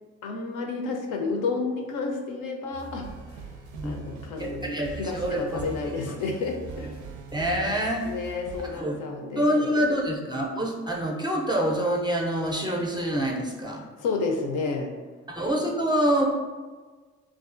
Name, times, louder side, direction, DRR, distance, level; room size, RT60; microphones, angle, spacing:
voice 1, 0.2-3.4 3.8-7.0 8.0-9.7 14.0-14.9, left 4 dB, 60° left, 2 dB, 0.5 m, -31 dB
sound 1, 2.7-8.8, right 4 dB, 75° right, 0.5 m, -41 dB
voice 2, 4.4-5.4 6.1-6.2 7.3-8.1 8.7-9.0 9.4-13.8 15.3-16.2, equal, 15° right, -1 dB, 0.4 m, -26 dB
2.4 x 2.3 x 2.4 m, 1.4 s
hypercardioid pair, 50°, 35 cm